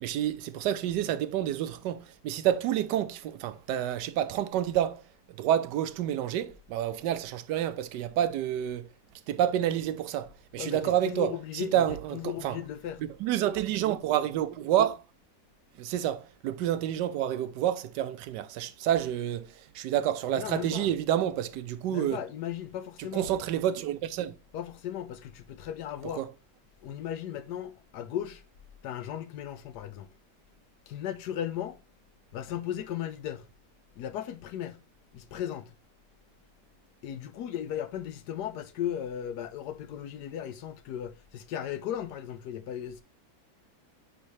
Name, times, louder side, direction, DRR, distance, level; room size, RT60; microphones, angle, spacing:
voice 1, 0.0-5.0 5.4-8.9 9.3-12.6 13.0-15.0 15.8-19.5 19.7-22.2 23.1-24.3 26.0-26.3, right 11 dB, 80° right, 1.2 m, -29 dB
voice 2, 10.6-11.9 12.1-13.0 20.3-20.9 21.9-23.3 24.5-26.3 26.8-28.4 28.8-30.1 30.9-31.8 32.3-33.4 34.0-34.8 35.1-35.7 37.0-43.0, left 10 dB, 70° left, 1.2 m, -36 dB
9.6 x 3.4 x 3.1 m
omnidirectional pair, 1.9 m